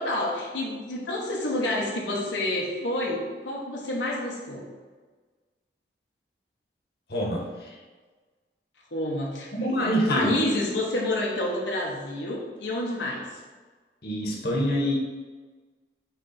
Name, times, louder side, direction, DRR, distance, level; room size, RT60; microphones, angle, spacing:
voice 1, 0.0-4.7 8.9-9.5 9.8-13.4, left 1 dB, 85° left, -3 dB, 1.1 m, -29 dB
voice 2, 7.1-7.7 9.5-10.4 14.0-14.9, equal, 60° left, -2 dB, 1.2 m, -26 dB
8.1 x 3.4 x 4.3 m, 1.4 s
head